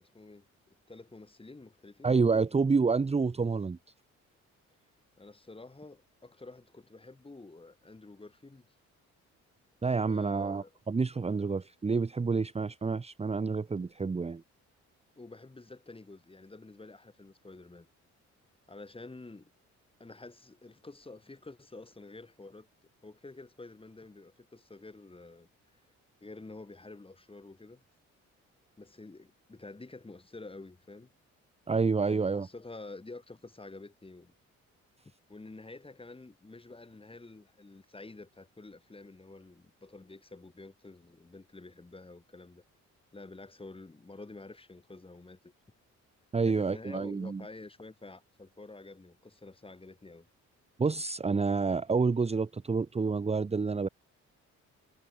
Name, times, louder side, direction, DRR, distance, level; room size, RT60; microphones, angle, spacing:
voice 1, 0.0-2.2 5.2-8.7 10.1-10.7 15.2-17.9 18.7-19.5 20.0-22.7 23.0-25.8 26.2-27.8 28.8-31.1 32.1-34.3 35.3-42.6 43.1-45.5 46.4-50.3, left 3 dB, 20° left, 4.8 m, -49 dB
voice 2, 2.0-3.8 9.8-14.4 31.7-32.5 46.3-47.4 50.8-53.9, right 4 dB, 20° right, 0.9 m, -28 dB
cardioid pair, 90°, 30 cm